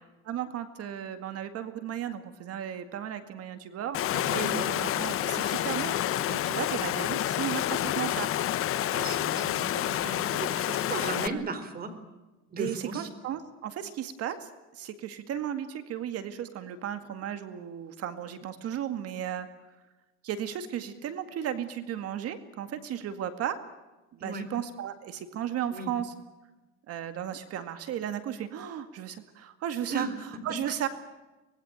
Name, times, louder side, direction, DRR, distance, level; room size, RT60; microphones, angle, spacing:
voice 1, 0.3-4.4 4.8-8.3 11.2-11.5 12.6-19.5 20.2-23.6 24.1-26.1 26.9-30.9, right 10 dB, 55° right, 10 dB, 2.1 m, -35 dB
Water, 3.9-11.3, left 12 dB, 45° left, 1.2 m, -29 dB
voice 2, 4.3-4.7 8.9-11.9 12.5-13.1 24.2-24.5 25.7-25.9 29.9-30.1, right 3 dB, 30° right, 11 dB, 4.2 m, -36 dB
25.0 x 20.5 x 9.1 m, 1.1 s
cardioid pair, 135°, 29 cm